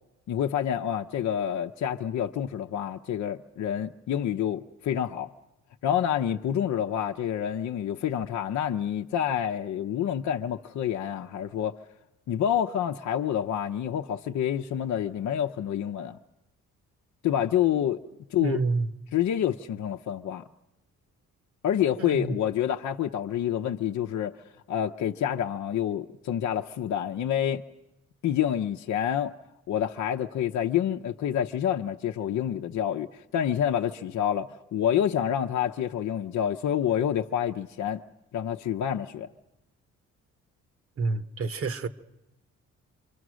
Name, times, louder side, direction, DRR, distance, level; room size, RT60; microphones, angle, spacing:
voice 1, 0.3-5.3 5.8-11.8 12.3-16.2 17.2-18.0 18.3-18.6 19.1-20.4 21.6-24.4 24.7-27.7 28.2-29.3 29.7-38.0 38.3-39.3, left 10 dB, 65° left, 0.8 m, -28 dB
voice 2, 18.4-18.9 22.0-22.4 41.0-41.9, right 4 dB, 50° right, 1.2 m, -28 dB
27.5 x 24.0 x 6.3 m
cardioid pair, 90°, 30 cm